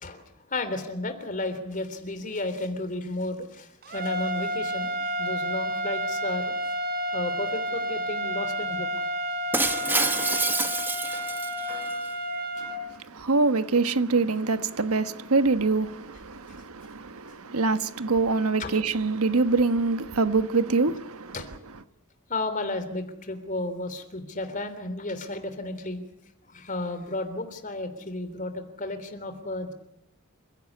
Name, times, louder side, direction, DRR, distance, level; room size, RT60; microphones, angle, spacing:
voice 1, 0.0-6.5 7.1-8.9 18.6-18.7 21.3-21.5 22.3-26.0 26.5-29.7, left 2 dB, 35° left, 3.4 m, -33 dB
sound 1, 3.8-12.8, equal, 45° right, 3.5 m, -30 dB
Shatter, 9.5-11.9, right 3 dB, 10° right, 1.0 m, -27 dB
voice 2, 12.6-21.4, right 3 dB, 85° right, 1.3 m, -25 dB
28.5 x 16.5 x 8.6 m
head